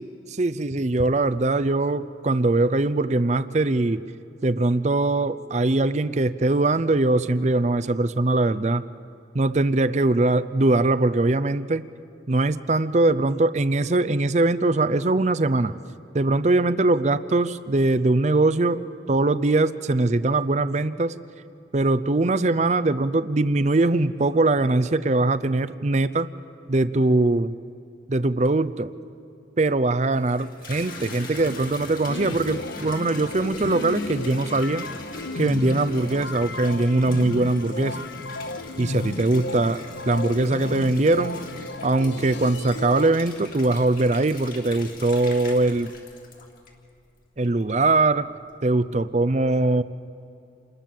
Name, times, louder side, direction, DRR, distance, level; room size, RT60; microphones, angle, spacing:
voice 1, 0.4-4.0 4.4-8.8 9.3-11.9 12.3-15.8 16.1-18.8 19.1-21.1 21.7-26.3 26.7-27.5 28.1-28.9 29.6-34.9 35.4-38.0 38.8-41.4 41.8-45.9 47.4-48.3 48.6-49.8, right 2 dB, 40° right, 12 dB, 0.6 m, -21 dB
Water tap faucet / Bathtub (filling or washing), 30.0-47.0 47.4-48.0, left 3 dB, 50° left, 3.4 m, -41 dB
sound 1, 32.1-43.1, left 2 dB, 75° left, 0.8 m, -34 dB
28.0 x 21.0 x 7.6 m, 2.6 s
head